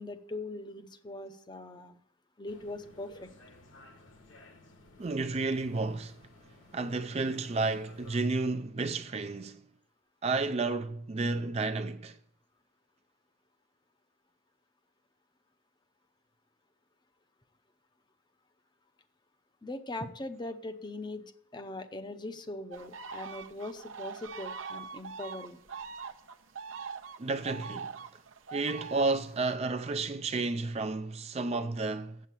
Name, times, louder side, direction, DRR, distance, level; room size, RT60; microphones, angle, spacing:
voice 1, 0.0-2.0 2.4-3.3 19.6-21.2 21.5-25.6, left 2 dB, 20° left, 0.7 m, -41 dB
sound 1, 2.5-8.2, left 2 dB, 65° left, 1.4 m, -56 dB
voice 2, 5.0-6.2 6.7-9.6 10.2-12.2 27.2-27.9 28.5-32.2, right 3 dB, 30° right, 0.4 m, -31 dB
sound 2, 22.7-29.5, right 5 dB, 70° right, 0.8 m, -42 dB
7.5 x 7.4 x 8.2 m
head